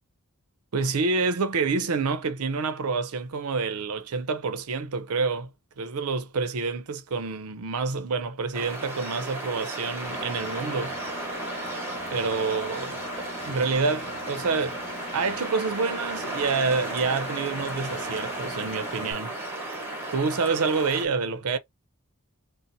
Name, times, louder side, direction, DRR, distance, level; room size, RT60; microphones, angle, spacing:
voice 1, 0.7-5.5 5.8-11.0 12.1-13.0 13.5-14.8 15.1-19.3 20.1-21.6, right 4 dB, 70° right, 0.5 m, -27 dB
sound 1, 8.5-21.1, right 2 dB, 10° right, 1.0 m, -35 dB
Engine, 10.0-19.1, left 2 dB, 30° left, 1.1 m, -40 dB
2.6 x 2.0 x 4.0 m
head